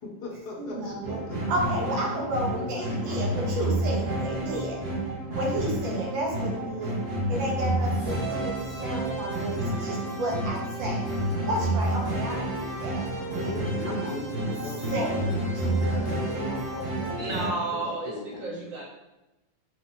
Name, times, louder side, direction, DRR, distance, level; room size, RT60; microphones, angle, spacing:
voice 1, 0.0-1.4 1.8-3.6 13.3-18.5, left 2 dB, 65° left, -1 dB, 1.3 m, -38 dB
voice 2, 0.6-1.2 1.5-4.8 5.3-6.9 7.3-11.1 11.5-13.5 14.0-14.1 14.6-15.7, right 1 dB, 85° right, -1 dB, 1.7 m, -32 dB
sound 1, 1.0-17.5, right 1 dB, 35° right, 1.1 m, -29 dB
voice 3, 17.2-18.8, right 3 dB, 60° right, -3 dB, 0.9 m, -32 dB
4.2 x 2.8 x 4.0 m, 0.97 s
omnidirectional pair, 2.0 m